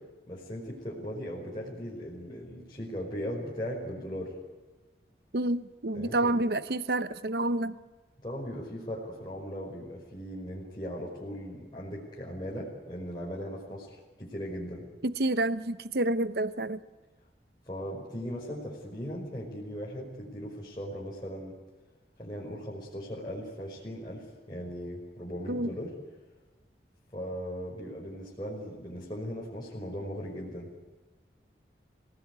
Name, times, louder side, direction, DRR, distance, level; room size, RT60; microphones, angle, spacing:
voice 1, 0.3-4.3 5.9-6.3 8.2-14.8 17.7-21.5 22.2-25.9 27.1-30.7, equal, 25° left, 5.1 m, -38 dB
voice 2, 5.3-7.8 15.0-16.8 25.5-25.7, right 2 dB, 65° right, 0.9 m, -28 dB
27.0 x 18.0 x 9.5 m
head